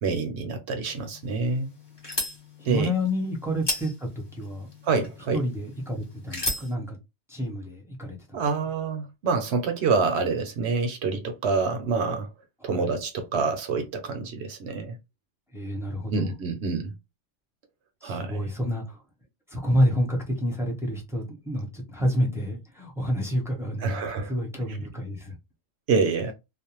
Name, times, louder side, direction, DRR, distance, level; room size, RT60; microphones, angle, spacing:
voice 1, 0.0-1.7 2.6-2.9 4.8-5.4 8.3-12.3 12.6-15.0 16.1-16.9 18.0-18.4 23.8-24.3 25.9-26.3, right 4 dB, 65° right, 0.8 m, -27 dB
sound 1, 0.9-6.7, left 1 dB, 20° left, 0.9 m, -36 dB
voice 2, 2.6-4.7 5.3-7.0 7.3-8.5 12.6-12.9 15.5-16.3 18.0-19.0 19.5-25.4, equal, 5° right, 0.6 m, -29 dB
2.5 x 2.1 x 2.9 m
omnidirectional pair, 1.3 m